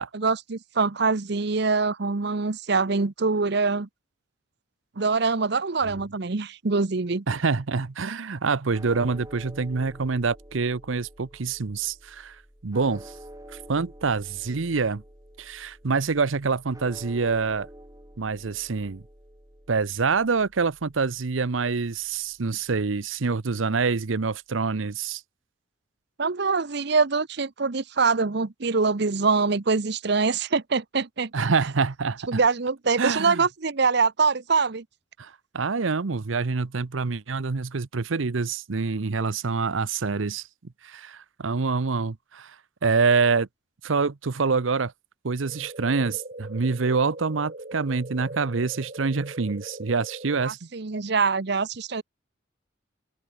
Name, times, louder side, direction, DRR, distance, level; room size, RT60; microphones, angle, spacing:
voice 1, 0.1-3.9 5.0-7.2 26.2-31.3 32.3-34.8 50.4-52.0, right 4 dB, 60° right, 0.8 m, -24 dB
voice 2, 7.3-13.1 13.5-15.0 15.4-17.7 18.2-19.0 19.7-25.2 31.3-32.4 33.0-33.4 35.2-40.5 40.8-42.6 42.8-43.5 43.8-44.9 45.2-50.7, right 4 dB, 90° right, 0.8 m, -26 dB
sound 1, 8.7-23.0, right 1 dB, 15° right, 3.6 m, -48 dB
sound 2, 45.4-50.4, right 2 dB, 40° right, 2.4 m, -40 dB
open air
head